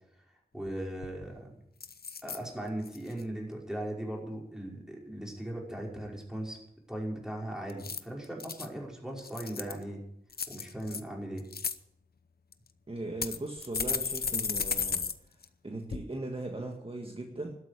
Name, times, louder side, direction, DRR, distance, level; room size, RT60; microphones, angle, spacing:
voice 1, 0.5-1.6 2.2-6.6 6.9-10.0 10.5-11.5, right 1 dB, 5° right, -2 dB, 5.3 m, -38 dB
sound 1, 0.7-0.8 1.0-1.4 1.8-2.4 2.9-3.2 7.7-8.7 9.2-9.8 10.3-11.0 11.4-11.8 12.5-12.6 13.2-15.1 15.4-15.5 15.9-16.0, left 5 dB, 80° left, 0.8 m, -34 dB
voice 2, 12.9-15.1 15.6-17.5, right 2 dB, 35° right, 1 dB, 1.8 m, -38 dB
12.5 x 8.3 x 9.9 m, 0.78 s
wide cardioid pair, 55°, 16 cm